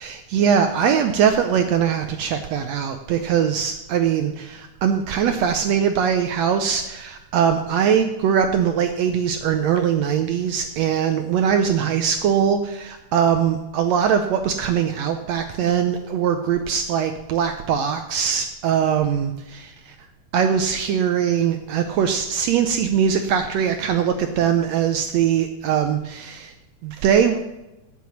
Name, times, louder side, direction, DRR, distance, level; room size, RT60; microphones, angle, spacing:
voice 1, 0.0-19.9 20.3-26.5 26.8-27.5, right 8 dB, 80° right, 7 dB, 1.6 m, -21 dB
9.2 x 8.1 x 7.0 m, 1.0 s
omnidirectional pair, 3.6 m